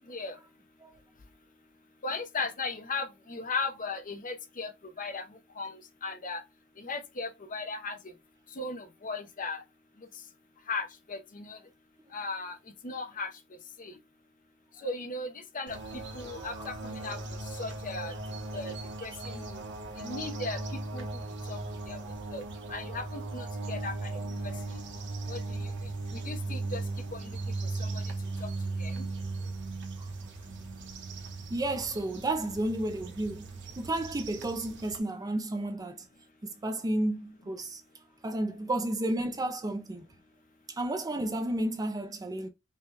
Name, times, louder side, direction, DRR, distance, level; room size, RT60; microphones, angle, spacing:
voice 1, 2.0-4.7 5.0-5.2 5.6-6.4 6.8-8.0 8.6-9.6 10.7-11.6 12.1-12.6 12.8-13.3 13.8-13.9 14.8-15.3 15.5-15.8 16.1-17.2 17.6-18.1 18.5-18.7 19.0-19.6 20.0-20.6 20.9-21.0 21.5-21.6 21.9-22.0 22.3-22.4 22.7-23.9 25.3-25.4 26.1-26.8 27.1-27.3 27.8-28.0 28.4-28.5 28.8-29.1, left 3 dB, 40° left, 0.8 m, -36 dB
sound 1, 15.7-35.0, right 2 dB, 55° right, 0.9 m, -38 dB
voice 2, 16.4-16.8 30.0-30.1 31.5-33.5 33.8-36.1 36.4-37.8 38.2-40.1 40.7-42.5, right 1 dB, 15° right, 0.4 m, -32 dB
5.6 x 2.3 x 3.2 m
head